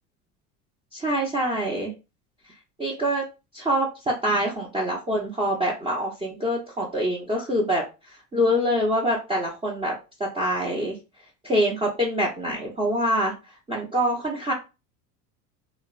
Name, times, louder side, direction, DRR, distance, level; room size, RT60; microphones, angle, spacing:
voice 1, 0.9-1.9 2.8-3.2 3.5-7.8 8.3-9.9 10.2-11.0 11.4-13.3 13.7-14.5, equal, 10° right, -4 dB, 0.6 m, -25 dB
2.9 x 2.1 x 2.4 m, 0.28 s
hypercardioid pair, 80°, 48 cm